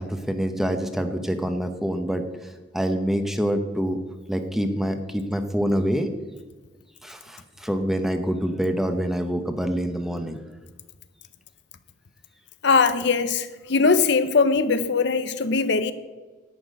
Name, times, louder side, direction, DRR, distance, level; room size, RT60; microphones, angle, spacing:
voice 1, 0.0-2.2 2.7-4.0 4.3-6.1 7.0-10.4, equal, ahead, 7 dB, 0.9 m, -26 dB
voice 2, 12.6-15.9, left 4 dB, 60° left, 11 dB, 0.6 m, -21 dB
11.5 x 6.0 x 8.9 m, 1.3 s
head